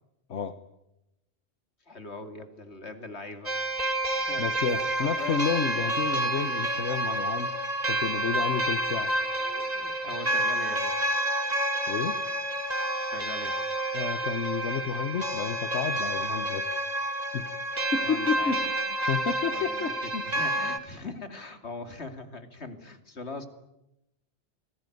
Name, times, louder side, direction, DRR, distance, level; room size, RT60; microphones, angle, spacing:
voice 1, 1.9-3.5 4.1-5.5 8.9-10.9 13.1-13.6 18.0-18.6 19.5-23.5, left 3 dB, 65° left, 8 dB, 3.0 m, -41 dB
sound 1, 3.5-20.8, right 1 dB, 35° right, 2.3 m, -29 dB
voice 2, 4.4-7.5 7.9-9.1 11.9-12.2 13.9-16.6 17.3-17.4 17.9-18.8 19.1-20.2, left 6 dB, 90° left, 10 dB, 1.5 m, -30 dB
28.5 x 20.5 x 9.4 m, 0.90 s
omnidirectional pair, 1.2 m